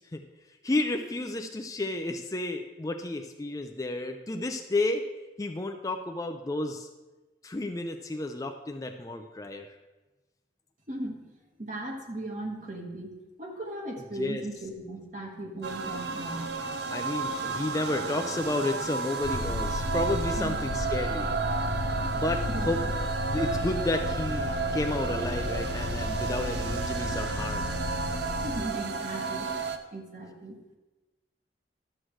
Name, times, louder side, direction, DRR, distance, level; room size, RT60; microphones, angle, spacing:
voice 1, 0.6-5.0 5.4-6.9 7.4-9.7 14.2-14.4 16.9-21.3 22.1-22.8 23.3-27.7, left 2 dB, 20° left, 5 dB, 0.4 m, -31 dB
voice 2, 10.9-11.2 11.6-16.5 20.4-20.7 22.5-22.9 28.4-30.6, right 1 dB, 45° right, 1 dB, 1.5 m, -38 dB
sound 1, 15.6-29.8, right 4 dB, 75° right, 0.6 m, -32 dB
sound 2, 19.2-28.6, left 2 dB, 65° left, 0.6 m, -33 dB
12.5 x 7.6 x 3.2 m, 1.1 s
head